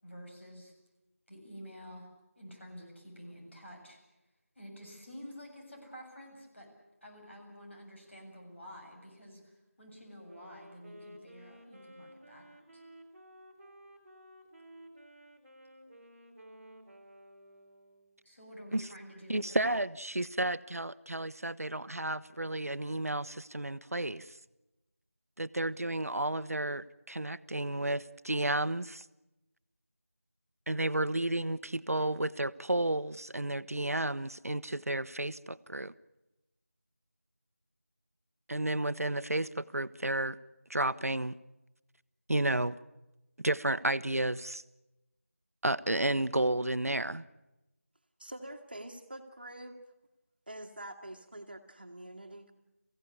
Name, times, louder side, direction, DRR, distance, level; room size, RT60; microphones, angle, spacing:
voice 1, 0.0-0.7 1.3-2.1 2.4-4.0 4.6-6.7 7.0-12.8 18.2-19.7, equal, 55° left, 1 dB, 7.6 m, -50 dB
Wind instrument woodwind instrument, 10.2-18.3, equal, 5° right, 1.3 m, -54 dB
voice 2, 19.3-24.3 25.4-29.0 30.7-35.9 38.5-40.4 40.7-41.4 42.3-42.7 43.4-44.6 45.6-47.2, right 1 dB, 90° right, 15 dB, 0.9 m, -32 dB
voice 3, 48.2-49.8 50.5-52.5, right 1 dB, 40° right, 5 dB, 1.7 m, -45 dB
22.5 x 16.0 x 9.8 m, 0.97 s
figure-of-eight pair, 175°, 8 cm